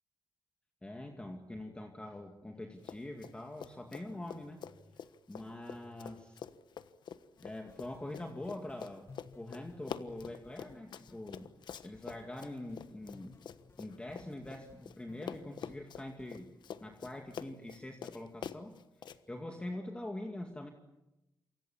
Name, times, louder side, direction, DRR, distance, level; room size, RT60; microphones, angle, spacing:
voice 1, 0.8-4.7 5.3-6.4 7.4-9.1 9.4-11.5 11.8-13.4 13.8-16.5 16.8-20.7, left 1 dB, 15° left, 3 dB, 2.3 m, -44 dB
Run, 2.8-3.3 3.6-15.0 15.2-19.2, left 8 dB, 70° left, 1.3 m, -46 dB
sound 1, 7.4-18.3, left 4 dB, 35° left, 1.7 m, -61 dB
28.0 x 25.0 x 7.3 m, 0.95 s
cardioid pair, 115°, 8 cm